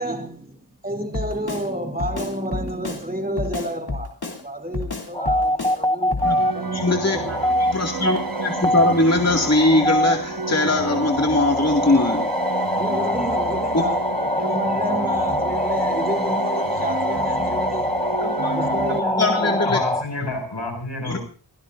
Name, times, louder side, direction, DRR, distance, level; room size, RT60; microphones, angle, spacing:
voice 1, 0.0-6.2 6.5-7.3 12.8-14.0 14.3-17.9 18.5-19.7, right 1 dB, 20° right, 4 dB, 3.3 m, -30 dB
Drum kit, 1.1-1.7 2.0-3.0 3.4-4.4 4.7-5.8 6.1-6.3, left 3 dB, 65° left, 3.2 m, -29 dB
sound 1, 5.1-20.0, left 1 dB, 10° left, 0.9 m, -24 dB
sound 2, 6.2-19.0, right 5 dB, 55° right, 1.5 m, -31 dB
voice 2, 6.7-12.3 13.7-13.8 18.2-18.6 18.9-19.8 21.0-21.2, left 2 dB, 40° left, 1 dB, 2.2 m, -21 dB
voice 3, 19.6-21.2, left 2 dB, 90° left, 2 dB, 6.3 m, -29 dB
26.0 x 17.0 x 2.6 m, 0.39 s
wide cardioid pair, 45°, 41 cm